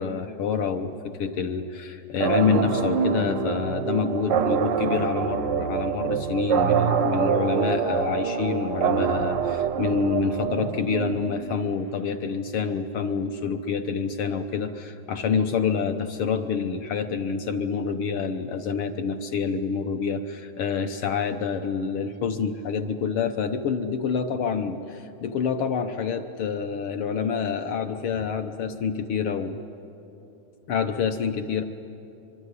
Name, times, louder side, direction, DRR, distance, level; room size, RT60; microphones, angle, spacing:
voice 1, 0.0-29.6 30.7-31.6, left 6 dB, 65° left, 8 dB, 1.4 m, -27 dB
sound 1, 2.2-11.6, right 7 dB, 75° right, 1.0 m, -25 dB
24.5 x 23.5 x 9.7 m, 2.8 s
omnidirectional pair, 3.3 m